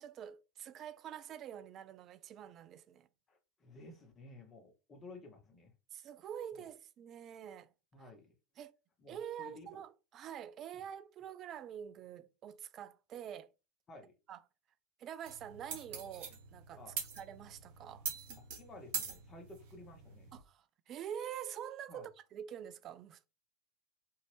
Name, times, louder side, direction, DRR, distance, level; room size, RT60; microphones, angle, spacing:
voice 1, 0.0-3.1 5.9-7.7 8.0-8.1 8.6-8.7 9.1-13.5 14.3-14.4 15.0-16.8 17.2-18.0 20.3-23.3, right 9 dB, 40° right, 0.3 m, -46 dB
voice 2, 3.3-5.7 6.6-6.7 7.9-8.3 9.0-9.8 13.9-14.1 16.8-17.0 18.6-20.3 21.9-22.1, left 2 dB, 30° left, 1.0 m, -54 dB
sound 1, 15.3-20.4, right 6 dB, 65° right, 1.1 m, -44 dB
2.7 x 2.5 x 3.3 m
figure-of-eight pair, 80°, 0 cm